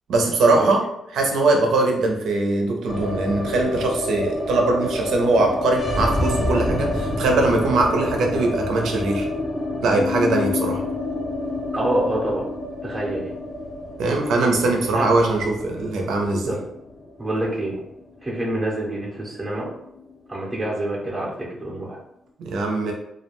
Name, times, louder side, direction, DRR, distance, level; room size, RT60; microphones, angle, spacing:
voice 1, 0.1-0.8 1.1-9.3 9.8-10.8 14.0-16.5 22.4-22.9, right 2 dB, 80° right, 2 dB, 0.5 m, -21 dB
sound 1, 2.9-19.0 19.2-19.3 19.6-20.3, left 2 dB, 30° left, 0.6 m, -28 dB
voice 2, 11.7-12.4 12.8-13.3 14.9-15.1 16.4-16.6 17.2-17.8 18.2-19.7 20.3-22.0, right 1 dB, 15° right, -6 dB, 0.6 m, -26 dB
2.3 x 2.1 x 3.0 m, 0.81 s
cardioid pair, 130°, 0 cm